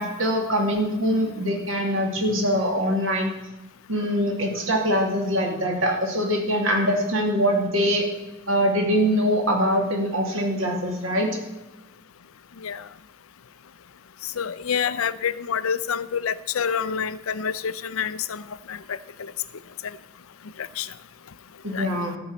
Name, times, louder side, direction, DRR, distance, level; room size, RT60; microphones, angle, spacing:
voice 1, 0.0-3.3 3.9-8.1 8.5-11.3 21.6-22.2, equal, 65° right, 1 dB, 2.6 m, -23 dB
voice 2, 14.4-18.4 18.7-18.8 20.8-20.9 21.7-21.9, left 7 dB, 80° left, 16 dB, 0.6 m, -27 dB
13.5 x 5.4 x 8.0 m, 1.0 s
head